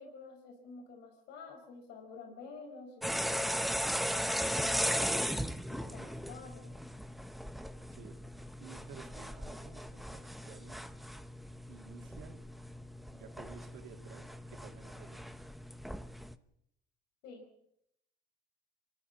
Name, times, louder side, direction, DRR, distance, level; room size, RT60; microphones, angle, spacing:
voice 1, 0.0-3.6 4.4-5.3 5.7-6.7 17.2-17.5, left 4 dB, 85° left, 3 dB, 5.0 m, -50 dB
sound 1, 3.0-16.4, equal, ahead, 1.0 m, -37 dB
voice 2, 8.6-10.9 11.7-12.4 13.1-15.2, right 7 dB, 90° right, 4 dB, 3.2 m, -54 dB
26.0 x 14.0 x 7.2 m, 0.77 s
cardioid pair, 110°, 17 cm